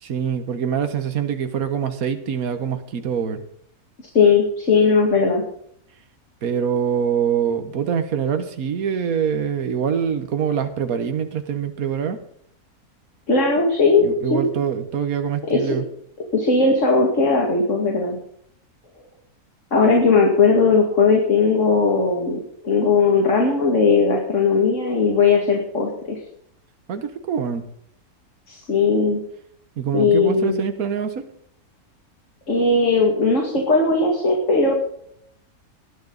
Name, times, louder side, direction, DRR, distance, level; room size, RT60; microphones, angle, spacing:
voice 1, 0.0-3.4 6.4-12.2 14.0-15.8 26.9-27.6 29.8-31.2, right 7 dB, 70° right, 8 dB, 1.7 m, -24 dB
voice 2, 4.1-5.4 13.3-14.4 15.5-15.6 16.3-18.2 19.7-26.2 28.5-29.2 29.9-30.6 32.5-34.7, left 4 dB, 55° left, 0 dB, 2.6 m, -18 dB
19.0 x 12.0 x 4.1 m, 0.67 s
omnidirectional pair, 1.6 m